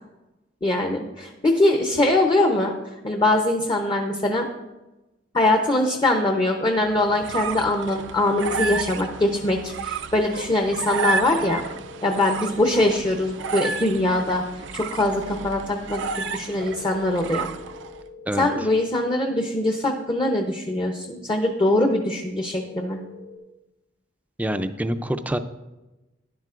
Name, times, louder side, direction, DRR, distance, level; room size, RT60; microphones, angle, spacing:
voice 1, 0.6-2.7 3.0-4.5 5.3-11.6 12.0-14.4 14.7-17.5 18.4-23.0, left 1 dB, 25° left, 3 dB, 0.7 m, -22 dB
sound 1, 6.9-18.0, right 5 dB, 75° right, 0.4 m, -32 dB
sound 2, 10.6-12.5 16.5-18.5 22.5-23.4, left 5 dB, 80° left, 1.7 m, -44 dB
voice 2, 18.3-18.7 24.4-25.4, right 1 dB, 10° right, 9 dB, 0.4 m, -26 dB
12.0 x 10.5 x 2.5 m, 1.0 s
head